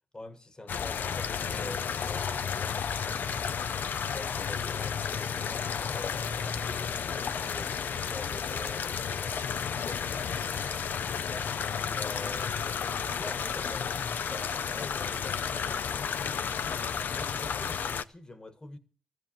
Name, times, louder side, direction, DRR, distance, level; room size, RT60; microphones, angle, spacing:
voice 1, 0.1-3.8 4.1-9.4 9.7-11.5 11.8-18.8, left 2 dB, 20° left, 1.6 m, -46 dB
sound 1, 0.7-18.0, left 7 dB, 65° left, 0.6 m, -32 dB
14.5 x 7.9 x 7.4 m
cardioid pair, 85°, 4 cm